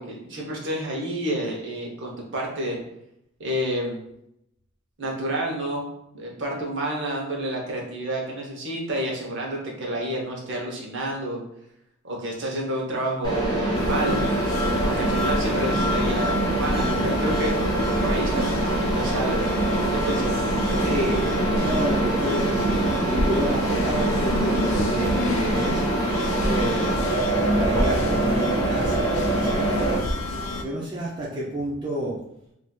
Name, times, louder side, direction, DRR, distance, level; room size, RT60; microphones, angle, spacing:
voice 1, 0.0-2.8 3.4-4.0 5.0-5.9 6.1-11.4 12.0-14.3 14.8-17.5 18.0-19.4 19.8-20.4, right 1 dB, 55° right, -1 dB, 0.8 m, -29 dB
Mechanisms, 13.2-29.9, right 1 dB, 20° left, 0.9 m, -24 dB
sound 1, 13.7-30.6, left 2 dB, 65° left, 0.4 m, -29 dB
voice 2, 20.6-25.9 26.4-30.1 30.6-32.2, right 1 dB, 20° right, -6 dB, 0.4 m, -30 dB
3.6 x 2.5 x 2.2 m, 0.79 s
head